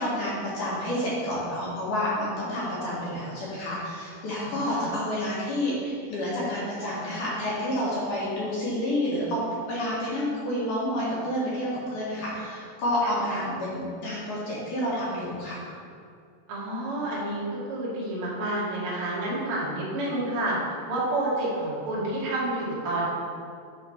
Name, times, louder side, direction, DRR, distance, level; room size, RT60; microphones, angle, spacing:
voice 1, 0.0-9.4 9.7-15.7, left 1 dB, 60° left, -7 dB, 2.5 m, -29 dB
voice 2, 4.4-4.9 13.2-13.4 16.5-20.6 20.9-23.0, right 1 dB, 45° right, -7 dB, 2.1 m, -29 dB
9.2 x 5.8 x 4.3 m, 2.3 s
omnidirectional pair, 5.1 m